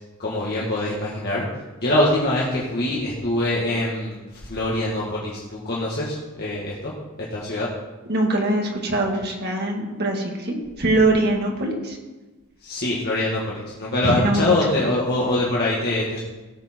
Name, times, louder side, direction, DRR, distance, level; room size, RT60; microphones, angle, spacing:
voice 1, 0.2-1.4 1.8-4.2 4.4-6.9 7.3-7.7 12.6-16.2, left 1 dB, 45° left, -5 dB, 1.9 m, -24 dB
voice 2, 8.1-12.0 14.0-14.5, right 1 dB, 50° right, 1 dB, 2.1 m, -22 dB
17.5 x 7.3 x 4.5 m, 1.2 s
head